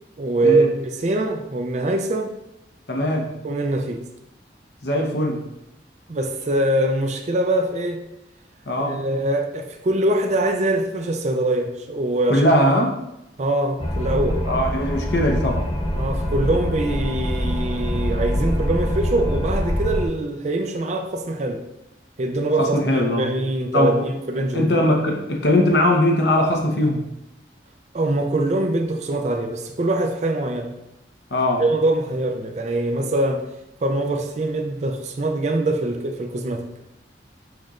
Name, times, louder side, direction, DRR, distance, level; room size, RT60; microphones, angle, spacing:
voice 1, 0.2-2.3 3.4-4.0 6.1-8.0 8.8-12.5 13.4-14.4 16.0-21.6 22.2-24.7 27.9-30.7 31.6-33.4 33.8-36.6, right 2 dB, 40° right, 4 dB, 0.4 m, -23 dB
voice 2, 2.9-3.3 4.8-5.4 8.7-9.0 12.3-13.0 14.5-15.7 22.6-23.3 23.7-24.0 24.5-27.0 31.3-31.6, left 1 dB, 70° left, 0 dB, 0.8 m, -20 dB
sound 1, 13.8-20.1, equal, 30° left, 0.5 m, -24 dB
6.2 x 3.1 x 2.5 m, 0.88 s
head